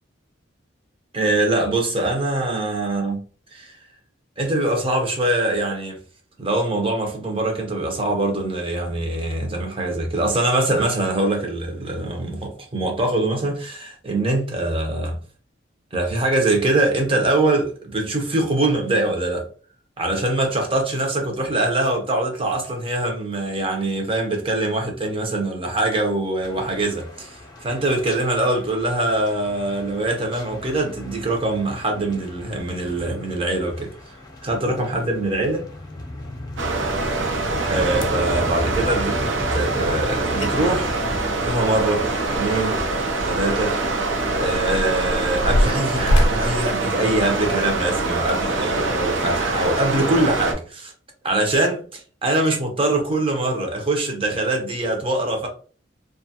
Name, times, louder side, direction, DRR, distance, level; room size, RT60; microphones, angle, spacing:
voice 1, 1.1-3.2 3.5-3.8 4.4-6.0 6.4-15.2 15.9-19.4 20.0-34.2 34.4-35.7 37.6-39.2 39.5-40.9 41.4-42.0 42.4-42.7 43.2-43.7 44.3-50.9 51.2-55.5, right 2 dB, 30° right, 0.7 m, -23 dB
sound 1, 26.4-42.9, left 1 dB, 20° left, 0.6 m, -36 dB
sound 2, 36.6-50.5, right 3 dB, 75° right, 0.6 m, -24 dB
sound 3, 37.9-38.4 40.1-40.2 40.4-40.5 40.9-42.7 43.0-43.1 43.8-47.6 48.2-48.4 49.0-49.1, equal, 80° left, 0.5 m, -24 dB
2.6 x 2.3 x 2.7 m
head